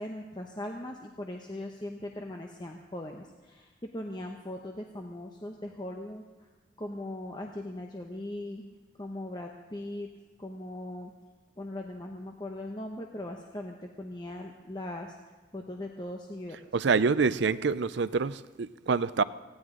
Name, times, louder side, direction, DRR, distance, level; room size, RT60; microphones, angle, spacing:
voice 1, 0.0-6.2 6.8-8.6 9.0-10.1 10.4-11.1 11.6-15.1 15.5-16.6, left 1 dB, 20° left, 0.9 m, -39 dB
voice 2, 16.7-19.2, right 5 dB, 65° right, 0.5 m, -26 dB
19.0 x 16.0 x 3.8 m
head